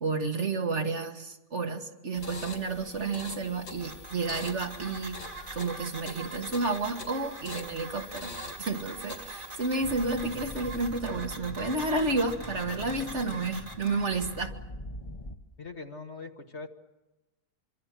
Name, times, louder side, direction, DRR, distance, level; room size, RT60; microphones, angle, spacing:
voice 1, 0.0-5.2 5.5-8.3 8.6-14.6, right 3 dB, 45° right, 5 dB, 1.9 m, -31 dB
sound 1, 2.1-11.1, left 2 dB, 85° left, 3.3 m, -45 dB
sound 2, 3.8-14.4, right 2 dB, 30° right, 3.3 m, -44 dB
sound 3, 9.8-15.4, left 2 dB, 25° left, 1.1 m, -43 dB
voice 2, 15.6-16.7, left 3 dB, 45° left, 5 dB, 1.8 m, -41 dB
25.5 x 24.5 x 7.5 m, 1.0 s
omnidirectional pair, 1.7 m